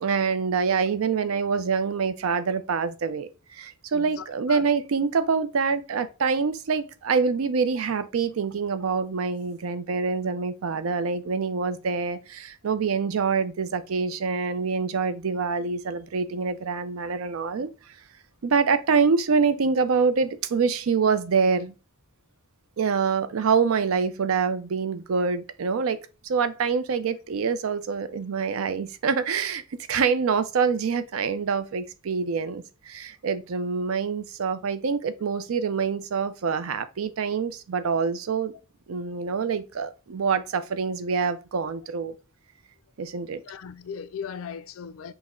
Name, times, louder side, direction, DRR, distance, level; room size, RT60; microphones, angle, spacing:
voice 1, 0.0-17.7 18.4-21.7 22.8-38.5 38.9-42.1 43.0-43.4, right 5 dB, 90° right, 0.5 m, -26 dB
voice 2, 3.9-4.7 28.1-28.2 43.5-45.1, left 7 dB, 80° left, 0.4 m, -38 dB
5.8 x 2.1 x 3.6 m
head